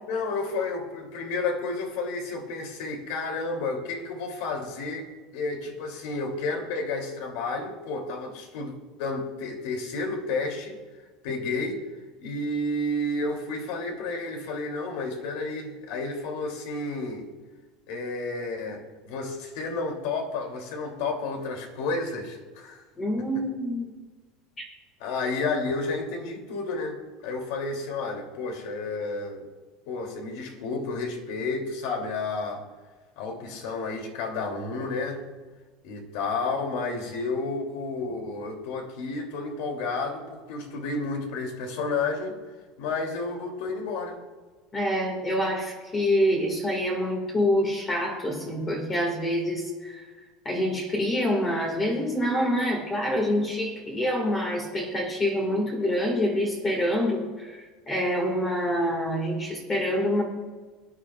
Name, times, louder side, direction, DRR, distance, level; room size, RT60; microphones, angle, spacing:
voice 1, 0.1-5.1 5.3-8.7 9.0-10.8 11.2-11.8 12.2-17.2 17.9-22.8 25.0-29.4 29.9-32.6 33.2-35.2 35.8-42.4 42.8-44.2, left 3 dB, 70° left, 3 dB, 2.7 m, -31 dB
voice 2, 23.0-23.9 44.7-50.0 50.5-60.2, equal, 20° left, 0 dB, 1.8 m, -26 dB
21.5 x 10.0 x 2.4 m, 1.3 s
cardioid pair, 165°, 0 cm